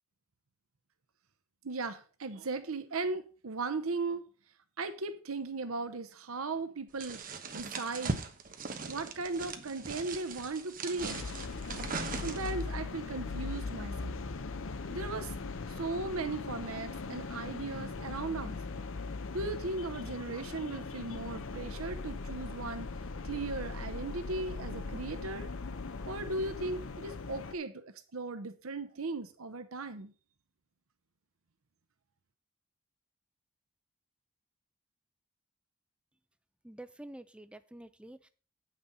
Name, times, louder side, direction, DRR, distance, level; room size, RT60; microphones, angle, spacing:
voice 1, 1.6-4.3 4.8-8.2 8.9-11.2 12.2-14.2 14.9-15.3 15.7-18.6 19.3-22.9 23.2-25.5 26.1-30.1, right 3 dB, 75° right, 0.8 m, -37 dB
sound 1, 7.0-12.7, right 4 dB, 40° right, 1.0 m, -39 dB
sound 2, 11.0-27.5, left 3 dB, 65° left, 0.6 m, -40 dB
voice 2, 36.6-38.3, right 1 dB, 5° right, 0.4 m, -48 dB
8.7 x 6.1 x 5.4 m
head